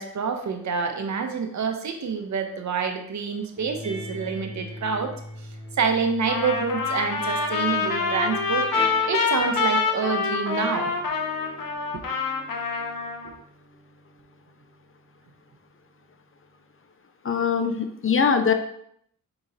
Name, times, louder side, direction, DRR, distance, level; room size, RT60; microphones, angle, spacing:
voice 1, 0.0-5.1 5.8-8.7 9.1-11.0 11.9-12.0, right 5 dB, 55° right, 5 dB, 0.7 m, -27 dB
sound 1, 3.6-10.0 10.7-15.6, left 1 dB, 20° right, 1.7 m, -41 dB
Trumpet, 6.3-13.3, left 4 dB, 75° left, 0.7 m, -26 dB
voice 2, 17.2-18.5, left 6 dB, 40° left, 7 dB, 0.5 m, -22 dB
4.8 x 2.9 x 2.7 m, 0.70 s
cardioid pair, 45°, 34 cm